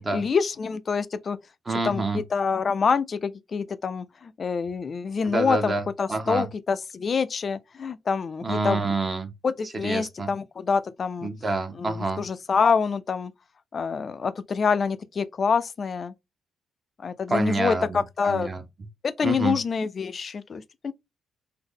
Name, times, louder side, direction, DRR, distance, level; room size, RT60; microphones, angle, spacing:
voice 1, 0.1-1.4 1.8-5.7 6.0-8.8 9.4-11.3 11.8-13.3 13.7-16.1 17.0-18.5 19.0-20.9, left 5 dB, 45° left, 0.3 m, -26 dB
voice 2, 1.7-2.2 5.3-5.8 6.1-6.5 8.4-9.3 9.8-10.3 11.2-12.2 17.3-18.6 19.2-19.5, right 3 dB, 30° right, 0.7 m, -27 dB
3.7 x 2.0 x 3.5 m
cardioid pair, 90°, 0 cm